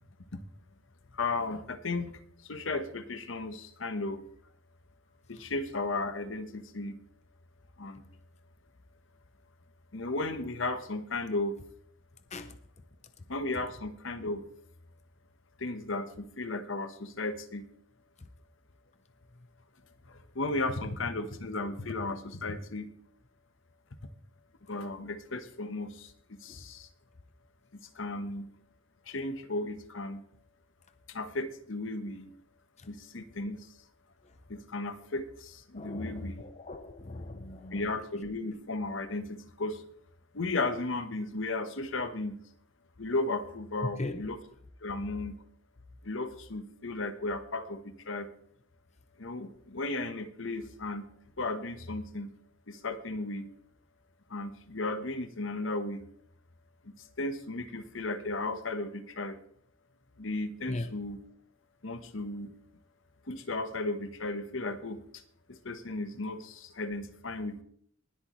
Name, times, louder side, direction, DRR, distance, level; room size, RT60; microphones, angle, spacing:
voice 1, 1.2-2.1 2.5-4.2 5.3-6.9 7.8-8.0 9.9-11.6 13.3-14.4 15.6-17.6 20.3-22.9 24.7-26.1 26.4-26.9 27.9-28.5 29.1-30.2 31.1-32.3 32.9-33.6 34.5-36.4 37.7-39.8 40.3-42.4 43.0-44.4 44.8-45.3 46.0-48.3 49.2-51.0 51.4-52.3 52.7-53.5 54.3-56.0 57.2-59.4 60.2-61.2 61.8-62.5 63.3-65.0 65.5-67.6, left 2 dB, 75° left, 1.1 m, -35 dB
voice 2, 35.8-37.8 44.0-44.2 60.7-60.9, left 2 dB, 35° left, 0.7 m, -38 dB
20.0 x 8.2 x 3.1 m
head